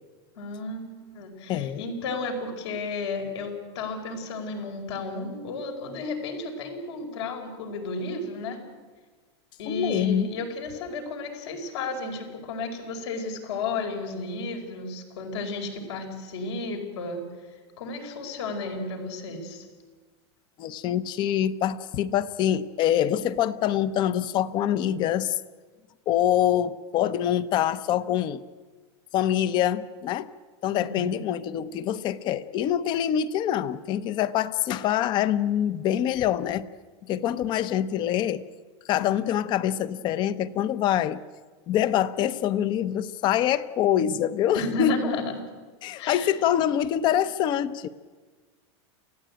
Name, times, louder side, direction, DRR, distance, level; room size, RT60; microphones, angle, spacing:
voice 1, 0.4-8.6 9.6-17.2 17.8-19.7 30.7-31.2 44.5-45.4 46.0-46.3, left 3 dB, 75° left, 2 dB, 5.0 m, -33 dB
voice 2, 1.5-1.8 9.7-10.3 20.6-25.4 26.1-28.4 29.1-30.3 30.6-36.7 37.1-38.4 38.9-41.2 41.7-45.1 45.8-47.9, left 10 dB, 30° left, 15 dB, 0.8 m, -25 dB
28.0 x 15.5 x 8.9 m, 1.4 s
supercardioid pair, 160°, 14 cm